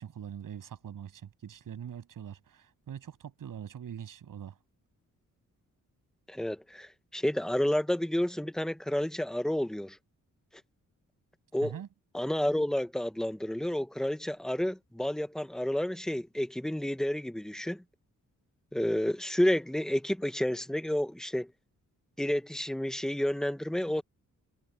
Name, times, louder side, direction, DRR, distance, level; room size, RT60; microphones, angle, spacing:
voice 1, 0.0-4.6 11.6-11.9, right 9 dB, 85° right, 7.7 m, -43 dB
voice 2, 6.3-10.0 11.5-11.8 12.1-17.8 18.7-21.5 22.2-24.0, left 1 dB, ahead, 1.0 m, -30 dB
wide cardioid pair, 165°, 32 cm